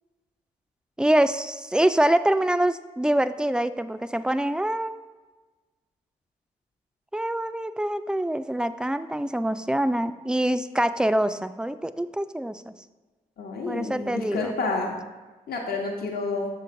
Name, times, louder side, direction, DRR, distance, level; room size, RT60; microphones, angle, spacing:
voice 1, 1.0-5.0 7.1-12.7 13.7-14.5, right 1 dB, 5° right, 12 dB, 0.4 m, -25 dB
voice 2, 13.4-15.0 15.5-16.5, left 3 dB, 65° left, 0 dB, 1.0 m, -29 dB
6.7 x 3.1 x 5.0 m, 1.3 s
supercardioid pair, 40°, 17 cm